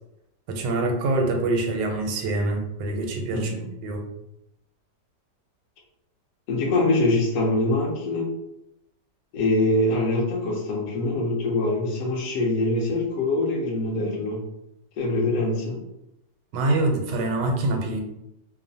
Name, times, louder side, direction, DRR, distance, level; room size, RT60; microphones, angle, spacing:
voice 1, 0.5-3.5 3.8-4.0 16.5-18.0, right 2 dB, 90° right, 2 dB, 1.2 m, -25 dB
voice 2, 3.3-3.7 6.5-8.3 9.3-14.4 15.0-15.8, left 2 dB, 65° left, -1 dB, 1.0 m, -24 dB
3.0 x 2.0 x 2.6 m, 0.84 s
omnidirectional pair, 1.9 m